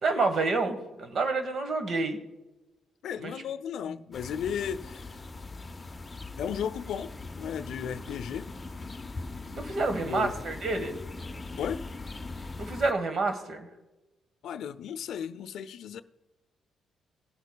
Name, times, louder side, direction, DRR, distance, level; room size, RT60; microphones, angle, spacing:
voice 1, 0.0-2.2 3.2-3.3 9.6-11.0 12.6-13.7, right 3 dB, 55° right, 1.3 m, -28 dB
voice 2, 3.0-5.1 6.4-8.5 9.8-10.3 11.6-11.8 14.4-16.0, left 8 dB, 75° left, 0.5 m, -35 dB
sound 1, 4.1-12.9, left 3 dB, 20° left, 0.7 m, -41 dB
17.5 x 8.1 x 2.3 m
cardioid pair, 90°, 0 cm